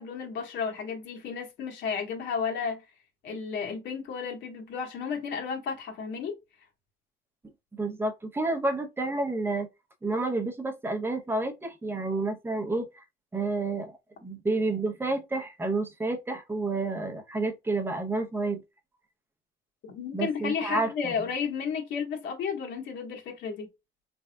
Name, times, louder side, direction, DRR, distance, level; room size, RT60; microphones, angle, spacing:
voice 1, 0.0-2.8 3.2-6.3 19.9-23.7, left 6 dB, 60° left, 1.4 m, -33 dB
voice 2, 7.7-9.7 10.0-13.0 13.3-18.6 20.1-21.1, right 2 dB, 10° right, 0.8 m, -30 dB
3.9 x 3.4 x 2.2 m
cardioid pair, 140°, 20 cm